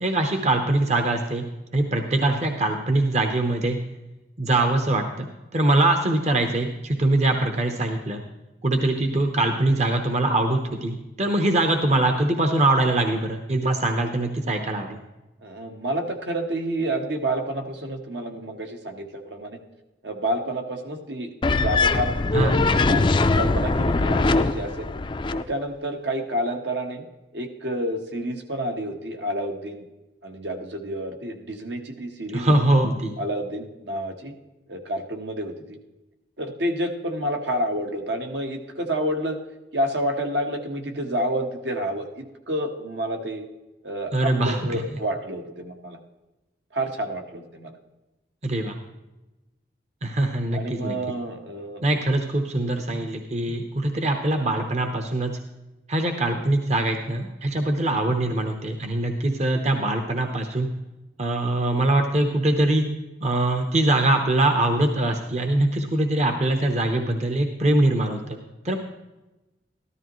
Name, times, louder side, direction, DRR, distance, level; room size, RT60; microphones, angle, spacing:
voice 1, 0.0-1.4 1.7-3.8 4.4-5.3 5.5-8.2 8.6-15.0 22.3-22.6 32.3-33.1 44.1-44.8 48.4-48.8 50.0-51.0 51.8-55.3 55.9-60.7 61.2-62.8 63.2-68.4 68.6-68.8, right 2 dB, 40° right, 5 dB, 0.9 m, -23 dB
voice 2, 15.4-19.6 20.0-24.9 25.3-27.0 27.3-29.8 30.2-32.6 33.2-34.3 34.7-35.8 36.4-39.4 39.7-43.4 43.8-46.0 46.7-47.7 50.5-51.8, right 1 dB, 70° right, 3 dB, 1.4 m, -29 dB
sound 1, 21.4-25.4, left 3 dB, 25° left, 0.4 m, -21 dB
13.5 x 12.5 x 3.1 m, 1.0 s
head